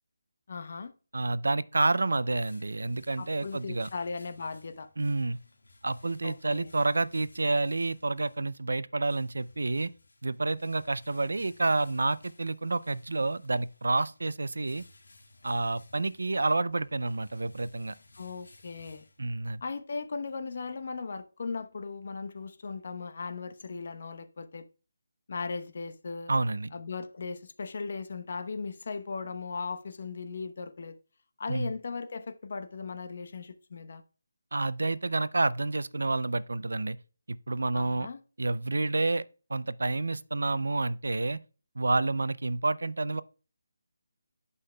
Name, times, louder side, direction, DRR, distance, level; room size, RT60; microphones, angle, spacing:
voice 1, 0.5-0.9 3.2-4.9 6.2-6.7 18.2-19.0 19.6-24.7 25.3-26.3 26.7-31.0 31.4-34.0 37.7-38.2, left 4 dB, 55° left, 0.9 m, -37 dB
voice 2, 1.1-3.9 5.0-5.4 5.8-9.9 10.2-14.8 15.4-17.9 19.2-19.6 26.3-26.7 31.5-31.7 34.5-37.0 37.3-38.1 38.4-39.2 39.5-41.4 41.8-43.2, right 2 dB, 80° right, 0.5 m, -29 dB
sound 1, 2.1-19.6, left 2 dB, 80° left, 1.7 m, -59 dB
14.5 x 5.6 x 2.2 m
figure-of-eight pair, 160°, 0 cm